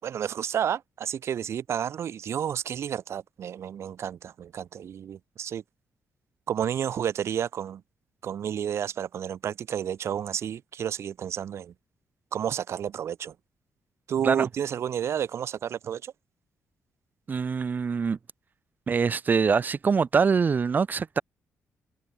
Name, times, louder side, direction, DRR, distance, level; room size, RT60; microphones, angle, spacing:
voice 1, 0.0-5.6 6.5-7.8 8.2-11.7 12.3-13.3 14.1-16.1, right 9 dB, 60° right, 5.6 m, -31 dB
voice 2, 17.3-18.2 18.9-21.2, right 5 dB, 35° right, 7.0 m, -24 dB
cardioid pair, 135°, 5 cm